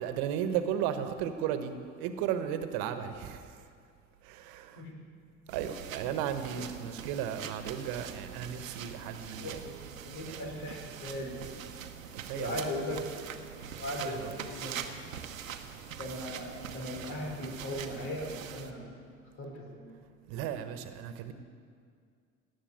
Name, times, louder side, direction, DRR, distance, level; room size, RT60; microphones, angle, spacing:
voice 1, 0.0-1.7 2.0-3.5 4.2-4.8 5.5-9.7 10.3-10.4 12.1-12.6 14.0-14.3 20.3-21.3, right 9 dB, 65° right, 9 dB, 1.3 m, -35 dB
sound 1, 5.5-18.7, right 8 dB, 85° right, 0.9 m, -43 dB
voice 2, 9.4-9.8 10.1-11.3 12.3-13.1 13.7-14.8 16.0-18.9 19.4-20.0, left 1 dB, 65° left, 1 dB, 3.9 m, -38 dB
17.5 x 7.3 x 9.5 m, 2.2 s
hypercardioid pair, 60°, 39 cm